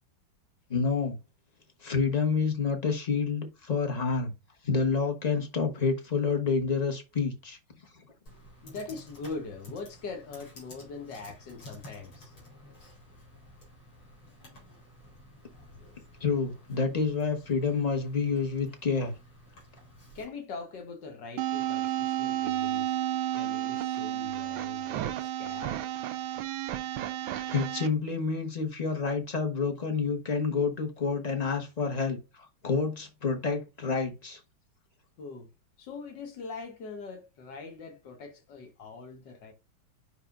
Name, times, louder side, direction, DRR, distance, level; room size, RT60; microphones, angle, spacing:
voice 1, 0.7-1.2 1.8-4.3 4.6-7.6 16.2-19.1 27.5-34.4, left 5 dB, 25° left, 1.0 m, -28 dB
Computer keyboard, 8.3-20.2, left 1 dB, 80° left, 5.1 m, -52 dB
voice 2, 8.6-12.3 20.2-23.0 23.3-25.8 35.2-35.5 35.8-39.5, left 4 dB, 60° left, 1.8 m, -42 dB
sound 1, 21.4-27.9, right 13 dB, 80° right, 1.4 m, -32 dB
8.2 x 5.5 x 2.6 m
omnidirectional pair, 2.2 m